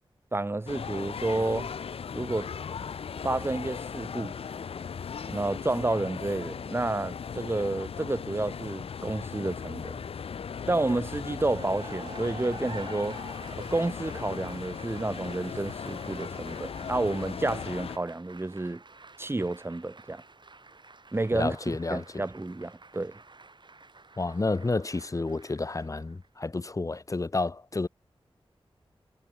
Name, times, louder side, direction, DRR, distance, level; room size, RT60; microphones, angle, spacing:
voice 1, 0.3-1.7 2.1-2.5 3.2-4.3 5.3-10.0 10.7-13.2 13.5-18.8 19.2-20.2 21.1-21.6 21.9-23.2, right 2 dB, 25° right, 1.0 m, -30 dB
sound 1, 0.7-18.0, left 6 dB, 75° left, 0.4 m, -38 dB
Cheering / Applause, 11.3-26.3, right 3 dB, 50° right, 6.7 m, -49 dB
voice 2, 21.3-22.2 24.2-27.9, left 3 dB, 35° left, 0.8 m, -30 dB
wide cardioid pair, 85°, 10 cm